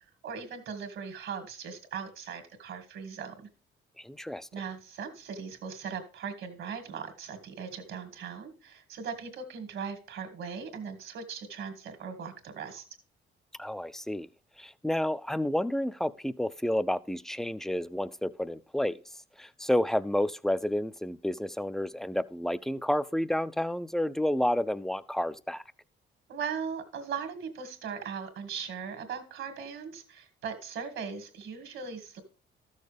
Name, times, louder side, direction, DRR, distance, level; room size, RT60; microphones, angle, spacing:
voice 1, 0.2-3.5 4.5-12.8 26.3-32.2, right 6 dB, 75° right, 1.9 m, -39 dB
voice 2, 4.0-4.5 13.6-14.3 14.6-19.0 19.4-25.6, left 1 dB, ahead, 0.4 m, -30 dB
13.0 x 6.5 x 3.4 m
cardioid pair, 90°, 20 cm